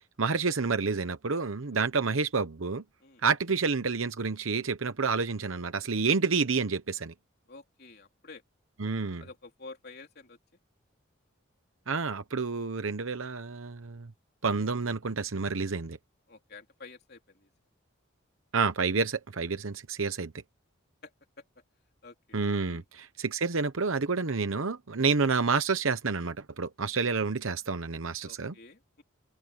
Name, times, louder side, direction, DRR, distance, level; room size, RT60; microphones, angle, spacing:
voice 1, 0.2-2.8 3.2-7.1 8.8-9.2 11.9-14.1 14.4-16.0 18.5-20.3 22.3-28.5, right 4 dB, 75° right, 0.9 m, -29 dB
voice 2, 7.5-8.4 9.2-10.4 16.3-17.5 21.0-21.1 21.4-21.5 22.0-22.4 22.7-22.8 28.2-29.0, left 3 dB, 50° left, 3.8 m, -49 dB
head